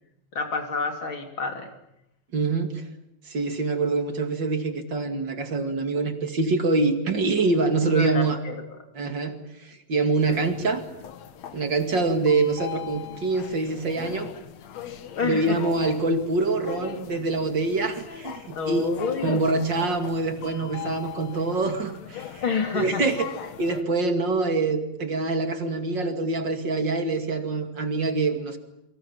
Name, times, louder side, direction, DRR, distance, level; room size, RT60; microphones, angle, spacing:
voice 1, 0.3-1.7 7.8-8.6 10.3-10.4 15.2-15.7 18.5-19.5 22.4-23.0, left 5 dB, 45° left, 5 dB, 3.7 m, -28 dB
voice 2, 2.3-2.8 3.3-8.4 8.9-10.8 11.5-14.3 15.2-18.9 19.2-22.4 22.7-23.3 23.6-28.6, right 3 dB, 40° right, 7 dB, 2.8 m, -25 dB
sound 1, 10.2-23.8, left 9 dB, 65° left, 2.6 m, -40 dB
28.0 x 24.5 x 7.5 m, 0.84 s
omnidirectional pair, 3.3 m